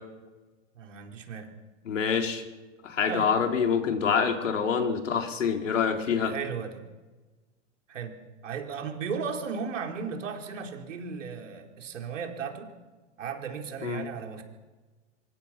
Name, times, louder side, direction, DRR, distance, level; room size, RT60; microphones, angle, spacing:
voice 1, 0.7-1.5 3.1-3.3 6.2-6.8 7.9-12.7 13.2-14.4, right 6 dB, 80° right, 3 dB, 4.4 m, -35 dB
voice 2, 1.8-2.4 2.8-6.3 13.8-14.0, left 6 dB, 85° left, 3 dB, 4.2 m, -26 dB
25.0 x 22.5 x 6.1 m, 1.2 s
hypercardioid pair, 120°, 37 cm